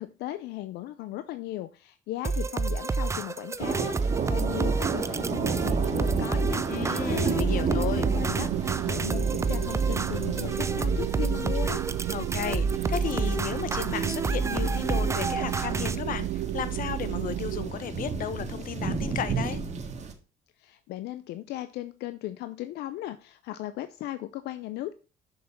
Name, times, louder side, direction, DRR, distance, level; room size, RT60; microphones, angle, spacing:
voice 1, 0.0-11.8 20.6-24.9, left 14 dB, 80° left, 0.6 m, -37 dB
sound 1, 2.2-16.0, right 4 dB, 15° right, 0.5 m, -29 dB
sound 2, 3.6-20.1, right 5 dB, 40° right, 1.9 m, -33 dB
voice 2, 6.7-8.1 12.1-19.6, left 9 dB, 55° left, 1.1 m, -34 dB
sound 3, 7.1-17.7, right 14 dB, 75° right, 0.5 m, -33 dB
6.7 x 6.6 x 5.6 m
cardioid pair, 110°, 17 cm